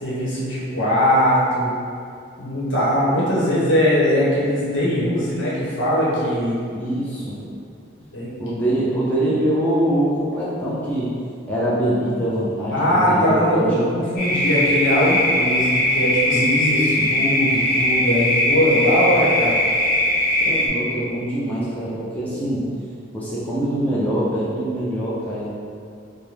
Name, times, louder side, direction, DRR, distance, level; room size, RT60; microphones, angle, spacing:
voice 1, 0.0-1.7 2.4-6.6 8.1-8.3 12.7-16.8 17.1-19.6, equal, 80° left, -7 dB, 1.1 m, -20 dB
voice 2, 6.7-7.6 8.4-11.1 11.5-13.9 16.3-17.1 20.4-22.7 23.1-25.5, right 1 dB, 10° left, -9 dB, 0.5 m, -23 dB
sound 1, 14.2-20.7, left 1 dB, 50° left, 1.0 m, -20 dB
4.4 x 2.2 x 3.4 m, 2.4 s
head